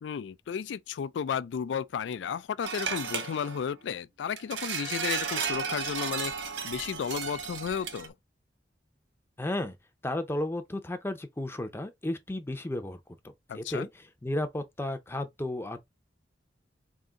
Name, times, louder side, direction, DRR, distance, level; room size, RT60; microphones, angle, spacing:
voice 1, 0.0-8.1 13.5-13.9, left 7 dB, 70° left, 0.3 m, -33 dB
sound 1, 2.6-3.7 4.4-8.1, right 6 dB, 80° right, 0.8 m, -34 dB
voice 2, 9.4-9.8 10.0-13.0 13.5-15.8, left 1 dB, 15° left, 0.6 m, -33 dB
3.7 x 2.6 x 3.9 m
head